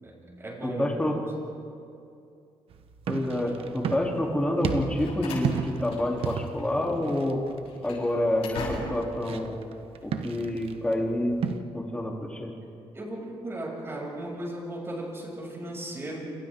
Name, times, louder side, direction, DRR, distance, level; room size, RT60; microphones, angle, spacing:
voice 1, 0.0-1.0 12.9-16.3, right 1 dB, 25° right, -2 dB, 7.0 m, -36 dB
voice 2, 0.6-1.1 3.1-7.4 7.8-9.6 10.0-11.4 11.7-12.5, left 1 dB, 10° left, -1 dB, 3.4 m, -28 dB
sound 1, 2.7-11.6, right 7 dB, 70° right, 1.2 m, -35 dB
Slam, 4.6-6.7 6.9-7.1 7.6-9.2, left 3 dB, 80° left, 7.8 m, -40 dB
28.0 x 28.0 x 3.8 m, 2.5 s
cardioid pair, 115°, 10 cm